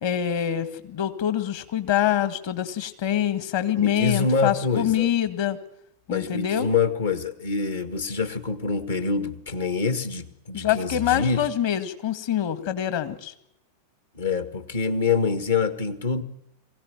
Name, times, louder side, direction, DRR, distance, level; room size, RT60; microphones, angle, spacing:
voice 1, 0.0-5.6 6.1-6.7 10.5-13.3, left 10 dB, 50° left, 11 dB, 1.9 m, -25 dB
voice 2, 3.8-5.1 6.1-11.5 14.1-16.2, left 4 dB, 65° left, 10 dB, 1.7 m, -26 dB
23.0 x 16.5 x 9.3 m, 0.82 s
figure-of-eight pair, 90°, 0 cm